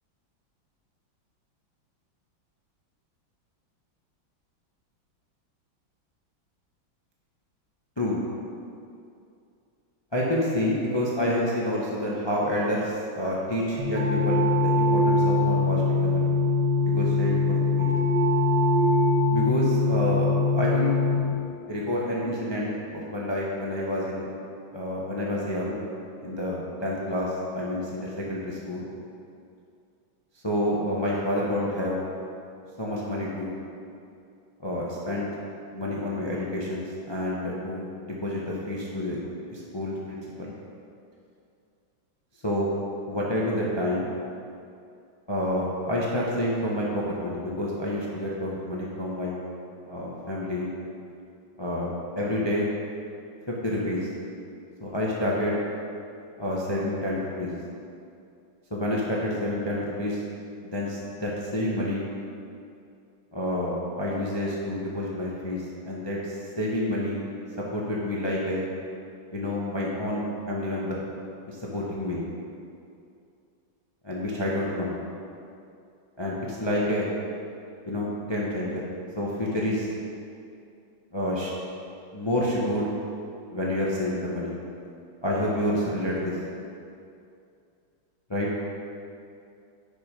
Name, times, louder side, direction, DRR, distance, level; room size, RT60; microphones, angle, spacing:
voice 1, 10.1-14.4 14.8-16.3 16.8-17.9 19.3-20.9 21.7-24.3 24.7-25.8 26.2-28.9 30.4-32.0 32.8-33.5 34.6-35.3 35.7-39.2 39.5-40.5 42.4-42.7 43.1-44.1 45.3-49.4 49.8-50.7 51.6-51.9 52.2-52.7 53.6-54.1 54.8-55.6 56.4-57.5 58.7-60.2 60.6-62.1 63.3-67.3 67.7-68.6 69.3-70.9 71.5-72.2 74.0-74.9 76.2-77.1 77.8-78.8 79.2-79.9 81.1-81.5 82.1-82.9 83.5-84.6 85.2-86.4 88.3-88.5, left 1 dB, 20° left, -4 dB, 0.8 m, -28 dB
sound 1, 13.8-21.2, left 2 dB, 80° right, 2.7 m, -22 dB
10.5 x 6.1 x 5.3 m, 2.5 s
omnidirectional pair, 2.1 m